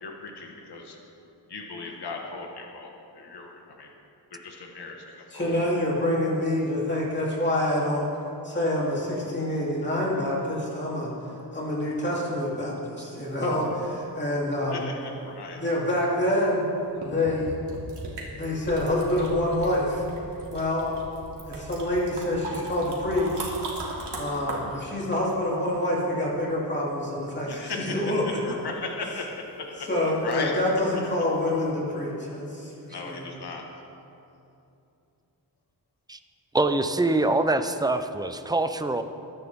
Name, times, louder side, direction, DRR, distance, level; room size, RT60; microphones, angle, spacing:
voice 1, 0.0-1.0 1.5-3.9 4.3-5.5 14.7-15.6 27.4-28.0 28.4-29.9 30.2-30.5 32.9-33.7, left 4 dB, 70° left, 1 dB, 1.6 m, -37 dB
voice 2, 5.3-8.1 8.4-11.1 11.5-14.9 15.6-16.7 17.0-17.5 18.3-20.0 20.5-20.9 21.4-23.5 24.1-28.4 29.9-33.3, left 1 dB, 25° left, -5 dB, 3.0 m, -27 dB
sound 1, 13.2-14.1 16.5-16.6 17.0-26.1 31.0-31.2 31.6-31.7, right 2 dB, 85° right, 2.8 m, -38 dB
voice 3, 36.5-39.0, right 2 dB, 10° right, 9 dB, 0.4 m, -24 dB
21.5 x 11.0 x 3.6 m, 2.8 s
wide cardioid pair, 165°, 41 cm